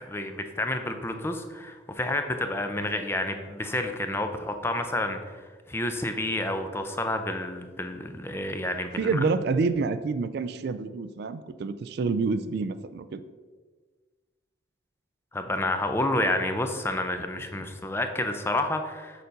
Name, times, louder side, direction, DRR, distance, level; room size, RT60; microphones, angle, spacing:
voice 1, 0.0-9.2 15.3-19.2, left 1 dB, 10° left, 6 dB, 0.5 m, -30 dB
voice 2, 9.0-13.2, right 4 dB, 55° right, 12 dB, 0.3 m, -28 dB
6.7 x 4.1 x 5.1 m, 1.4 s
head